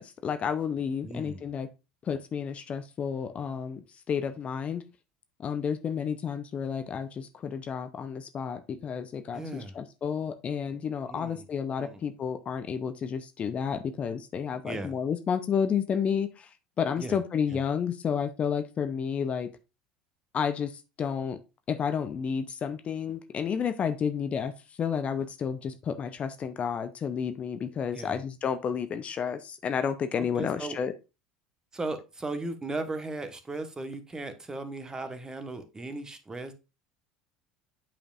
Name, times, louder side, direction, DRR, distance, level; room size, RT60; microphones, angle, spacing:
voice 1, 0.0-1.7 2.0-4.8 5.4-16.5 16.8-19.5 20.3-21.4 21.7-24.5 24.8-30.9, left 7 dB, 35° left, 10 dB, 0.7 m, -31 dB
voice 2, 1.0-1.5 9.3-9.7 11.1-11.4 11.8-12.0 14.6-14.9 17.0-17.2 17.5-17.6 27.9-28.2 30.3-30.8 31.7-36.5, right 2 dB, 20° right, 9 dB, 1.2 m, -37 dB
8.6 x 5.1 x 2.5 m, 0.27 s
hypercardioid pair, 70°, 4 cm